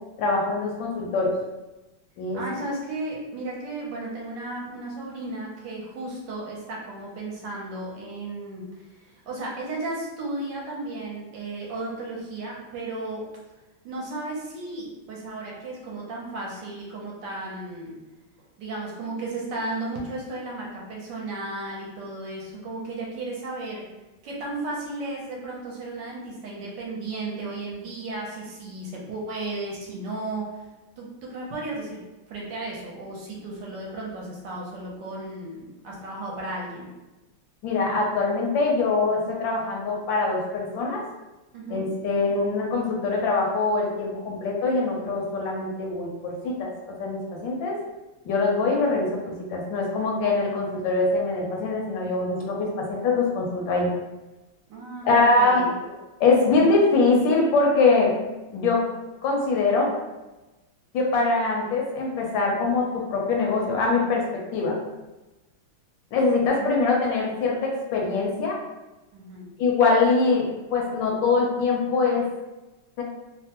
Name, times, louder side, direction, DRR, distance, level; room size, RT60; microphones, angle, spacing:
voice 1, 0.2-1.3 2.2-2.4 37.6-41.0 41.7-47.8 48.2-53.9 55.0-55.6 56.2-58.1 58.5-58.8 59.2-59.9 60.9-64.8 66.1-68.6 69.6-72.3 73.0-73.1, left 3 dB, 80° left, -1 dB, 1.3 m, -23 dB
voice 2, 2.3-13.2 13.8-18.0 18.6-23.9 24.2-30.7 31.0-32.0 32.3-36.9 41.5-41.8 54.7-55.7 66.4-66.7 69.1-69.5, right 2 dB, 75° right, -3 dB, 1.2 m, -34 dB
3.4 x 2.1 x 2.8 m, 1.1 s
omnidirectional pair, 2.1 m